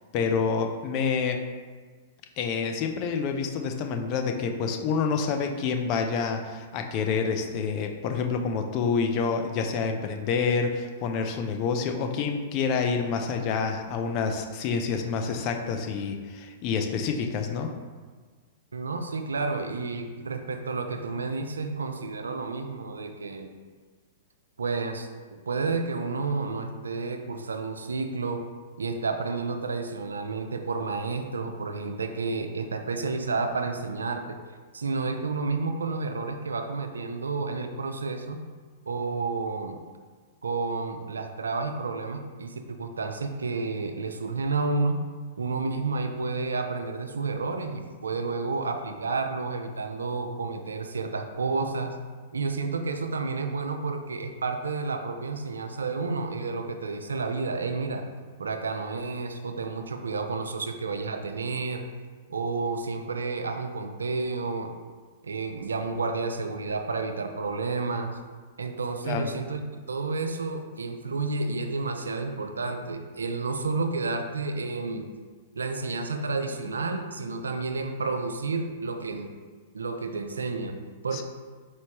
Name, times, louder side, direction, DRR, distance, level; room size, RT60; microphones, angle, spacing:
voice 1, 0.1-1.4 2.4-17.7 69.0-69.3 81.1-81.2, left 5 dB, 40° left, 4 dB, 0.4 m, -28 dB
voice 2, 18.7-23.5 24.6-28.4 28.8-34.4 34.7-38.4 38.9-39.8 40.4-45.0 45.4-52.0 52.3-58.0 58.4-61.9 62.3-64.7 65.2-68.2 68.6-69.6 69.9-75.1 75.5-79.3 79.7-80.8 81.0-81.2, right 3 dB, 85° right, 6 dB, 0.4 m, -30 dB
4.3 x 3.1 x 2.9 m, 1.5 s
hypercardioid pair, 110°, 0 cm